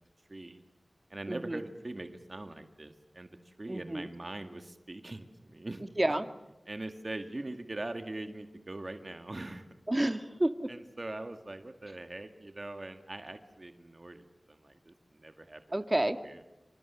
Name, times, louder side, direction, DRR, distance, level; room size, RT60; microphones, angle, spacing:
voice 1, 0.3-0.6 1.1-5.8 6.7-9.7 10.7-15.6 16.2-16.4, right 2 dB, 50° right, 7 dB, 1.9 m, -42 dB
voice 2, 1.3-1.6 3.7-4.1 6.0-6.3 9.9-10.7 15.7-16.2, right 1 dB, 30° right, 9 dB, 1.6 m, -30 dB
27.0 x 25.5 x 7.0 m, 1.0 s
wide cardioid pair, 40°, 0 cm